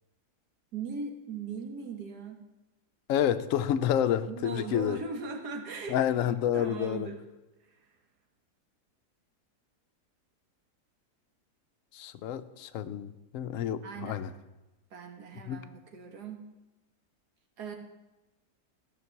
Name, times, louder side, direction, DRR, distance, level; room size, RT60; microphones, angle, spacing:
voice 1, 0.7-2.4 4.3-7.2 7.6-7.9 13.8-14.3 14.9-16.4 17.6-17.8, right 5 dB, 80° right, 3 dB, 1.9 m, -39 dB
voice 2, 3.1-5.0 5.9-7.1 11.9-14.3 15.5-15.6, left 10 dB, 70° left, 10 dB, 0.9 m, -29 dB
13.0 x 5.3 x 6.9 m, 1.1 s
omnidirectional pair, 1.7 m